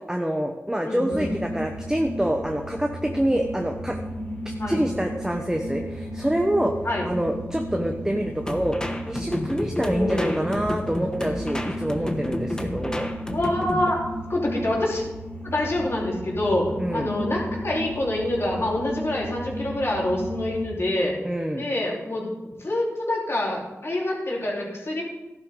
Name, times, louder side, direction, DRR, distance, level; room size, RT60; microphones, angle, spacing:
voice 1, 0.1-4.0 4.7-6.7 7.0-13.1 16.8-17.1 21.2-21.7, right 1 dB, 10° right, 3 dB, 1.1 m, -26 dB
voice 2, 0.8-1.3 4.6-4.8 6.8-7.1 9.8-10.5 13.3-14.0 14.3-15.0 15.4-21.1 21.6-22.3 22.6-25.0, left 1 dB, 50° left, -4 dB, 4.1 m, -26 dB
sound 1, 1.1-20.6, equal, 35° left, 4.1 m, -34 dB
sound 2, 8.5-14.0, left 1 dB, 15° left, 1.2 m, -31 dB
14.0 x 11.5 x 3.9 m, 1.1 s
wide cardioid pair, 65°, 5 cm